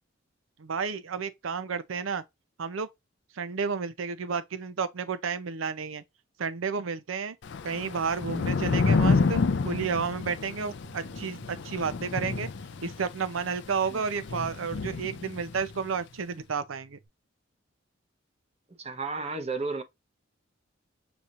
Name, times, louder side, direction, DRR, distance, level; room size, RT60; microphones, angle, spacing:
voice 1, 0.6-2.2 2.6-2.9 3.3-6.0 6.4-7.4 7.6-12.5 12.8-17.0, right 5 dB, 90° right, 0.6 m, -31 dB
Thunder / Rain, 7.4-15.8, left 4 dB, 60° left, 0.5 m, -29 dB
sound 1, 10.8-17.1, right 4 dB, 55° right, 2.5 m, -56 dB
voice 2, 18.8-19.8, right 3 dB, 30° right, 0.9 m, -32 dB
7.0 x 2.9 x 2.5 m
head